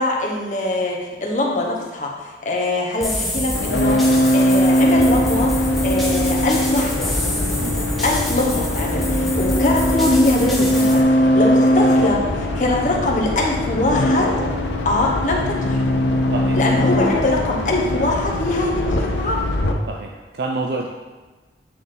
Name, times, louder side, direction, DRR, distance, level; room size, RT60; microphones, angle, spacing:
voice 1, 0.0-7.1 8.0-14.3 14.8-15.8 16.5-19.4, left 2 dB, 45° left, -1 dB, 1.0 m, -22 dB
sound 1, 3.0-11.0, left 1 dB, ahead, 0.8 m, -28 dB
sound 2, 3.5-19.7, left 1 dB, 85° left, 0.7 m, -20 dB
voice 2, 19.9-20.9, right 3 dB, 65° right, 1 dB, 0.4 m, -27 dB
8.3 x 3.7 x 3.8 m, 1.3 s
head